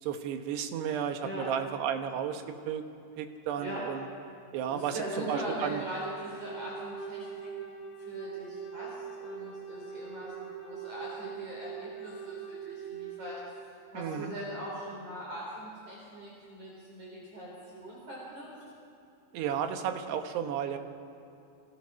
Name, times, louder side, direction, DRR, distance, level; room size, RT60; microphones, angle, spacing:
voice 1, 0.0-2.8 3.2-4.1 4.5-5.0 5.3-5.8 14.0-14.3 19.3-20.8, right 8 dB, 75° right, 6 dB, 3.3 m, -33 dB
voice 2, 3.6-3.9 4.7-7.5 8.0-13.6 13.9-18.5, right 1 dB, 45° right, -4 dB, 5.4 m, -41 dB
Wind instrument woodwind instrument, 4.7-13.3, right 6 dB, 15° left, 4.7 m, -42 dB
27.0 x 26.0 x 6.4 m, 2.7 s
omnidirectional pair, 4.9 m